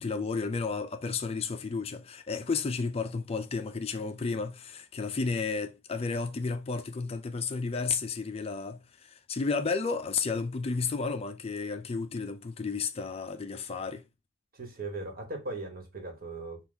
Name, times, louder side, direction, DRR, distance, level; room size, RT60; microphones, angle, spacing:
voice 1, 0.0-14.0, left 4 dB, 30° left, 0.4 m, -32 dB
voice 2, 14.5-16.6, right 2 dB, 50° right, 1.4 m, -38 dB
5.9 x 2.4 x 3.4 m
head